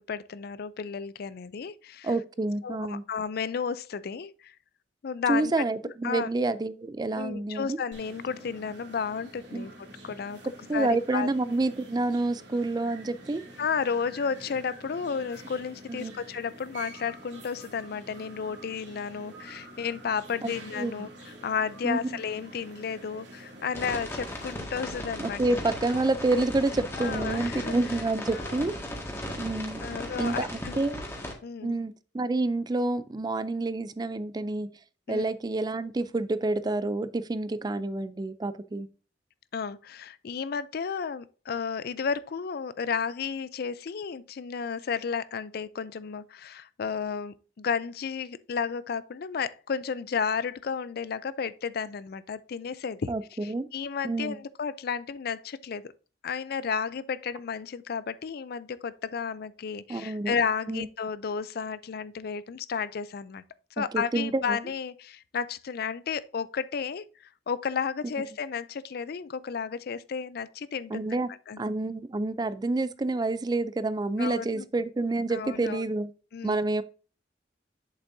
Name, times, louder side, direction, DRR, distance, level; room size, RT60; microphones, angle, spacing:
voice 1, 0.0-2.1 2.6-4.5 5.0-5.5 6.0-6.3 7.1-10.4 10.7-11.3 13.6-25.4 26.9-27.8 28.3-28.7 29.8-30.8 31.4-31.8 35.1-35.3 39.5-53.1 53.4-55.9 56.2-63.4 63.8-71.1 71.5-71.6 74.2-74.7 75.3-75.8 76.3-76.6, left 6 dB, 60° left, 0.4 m, -33 dB
voice 2, 2.0-3.0 5.3-7.8 9.5-9.7 10.7-13.4 15.9-16.2 20.4-21.1 21.8-22.2 25.2-28.7 29.4-29.8 30.2-31.0 31.6-34.7 35.1-38.9 53.1-53.7 54.0-54.4 59.9-60.3 60.7-60.9 63.9-64.6 70.9-71.3 71.6-76.1 76.4-76.8, right 2 dB, 25° right, 0.4 m, -28 dB
sound 1, 7.9-24.6, right 1 dB, 90° right, 2.5 m, -48 dB
sound 2, 23.7-31.3, left 1 dB, 15° left, 1.8 m, -36 dB
8.1 x 6.9 x 2.6 m
head